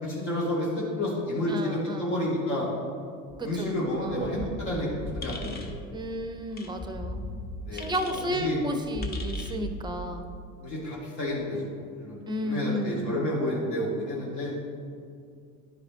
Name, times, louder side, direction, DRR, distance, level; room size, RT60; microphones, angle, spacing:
voice 1, 0.0-2.7 3.4-5.7 7.7-7.9 8.3-8.6 10.6-14.5, left 1 dB, 60° left, -5 dB, 2.0 m, -30 dB
voice 2, 1.5-2.3 3.4-4.3 5.9-7.4 7.7-10.3 12.3-13.2, equal, 10° right, 6 dB, 0.6 m, -33 dB
sound 1, 3.3-10.4, equal, 5° left, 1.3 m, -39 dB
sound 2, 5.2-5.7 6.5-6.7 7.8-8.3 9.0-9.6, left 3 dB, 20° left, 0.8 m, -42 dB
10.5 x 4.9 x 3.7 m, 2.2 s
figure-of-eight pair, 75°, 43 cm